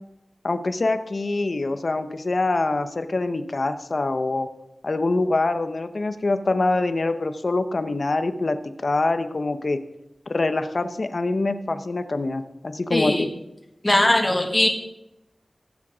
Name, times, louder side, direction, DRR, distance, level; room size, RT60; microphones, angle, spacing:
voice 1, 0.4-4.5 4.8-9.8 10.3-13.3, left 2 dB, 60° left, 10 dB, 0.9 m, -24 dB
voice 2, 12.9-13.3 13.8-14.7, left 1 dB, 20° left, 3 dB, 2.0 m, -20 dB
15.5 x 7.5 x 6.2 m, 0.90 s
wide cardioid pair, 65°, 0 cm